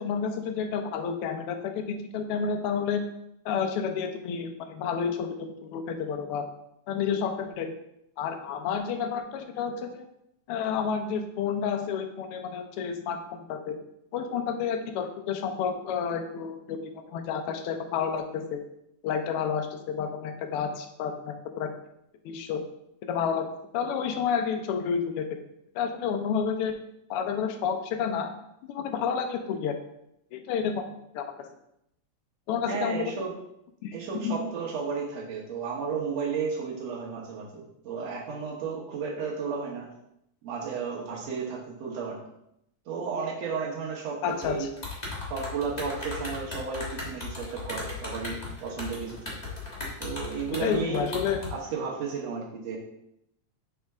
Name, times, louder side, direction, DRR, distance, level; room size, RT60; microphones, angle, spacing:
voice 1, 0.0-3.0 3.4-6.5 6.9-7.7 8.2-10.1 10.5-13.7 14.1-18.6 19.0-21.7 22.2-22.6 23.1-23.5 23.7-25.3 25.7-26.8 27.1-28.3 28.7-29.8 30.3-30.9 31.1-31.5 32.5-33.1 33.8-34.3 44.2-44.7 50.6-51.4, left 6 dB, 80° left, 5 dB, 1.3 m, -30 dB
voice 2, 32.7-33.3 33.9-39.9 40.4-42.2 42.9-44.7 45.3-49.5 50.0-51.1 51.5-52.8, right 5 dB, 65° right, -2 dB, 2.3 m, -33 dB
sound 1, 44.3-51.5, left 3 dB, 35° left, 0.6 m, -37 dB
6.5 x 4.4 x 3.5 m, 0.78 s
omnidirectional pair, 3.3 m